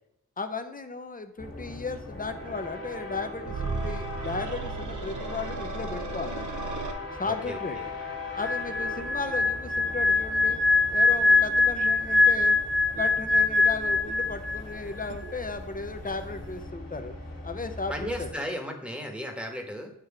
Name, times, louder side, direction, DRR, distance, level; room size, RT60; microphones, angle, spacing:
voice 1, 0.4-6.5 7.1-7.8 8.3-10.6 10.9-12.6 12.9-17.1 17.4-18.5, left 4 dB, 25° left, 7 dB, 0.8 m, -35 dB
sound 1, 1.4-18.3, left 2 dB, 45° left, 2.0 m, -40 dB
sound 2, 3.4-6.9, right 4 dB, 70° right, 0.9 m, -35 dB
voice 2, 7.3-7.9 17.9-19.9, equal, 5° right, 3 dB, 1.4 m, -35 dB
sound 3, 8.4-14.8 15.0-15.3, left 3 dB, 40° right, 0.6 m, -23 dB
9.1 x 3.1 x 4.8 m, 0.83 s
cardioid pair, 65°, 31 cm